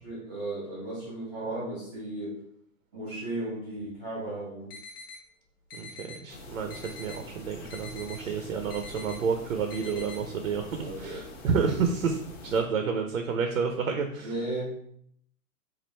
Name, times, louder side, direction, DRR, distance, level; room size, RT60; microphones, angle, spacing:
voice 1, 0.0-2.3 2.9-4.7 10.7-11.2 12.5-12.6 14.2-14.7, right 2 dB, 10° right, -8 dB, 0.8 m, -35 dB
sound 1, 4.7-5.2 5.7-6.2 6.7-7.2 7.7-8.2 8.7-9.2 9.7-10.2, left 4 dB, 80° left, 1.4 m, -44 dB
voice 2, 5.7-14.4, right 5 dB, 60° right, 5 dB, 0.5 m, -30 dB
sound 2, 6.3-12.6, left 2 dB, 60° left, 0.9 m, -45 dB
3.1 x 2.4 x 4.1 m, 0.68 s
hypercardioid pair, 180°, 45 cm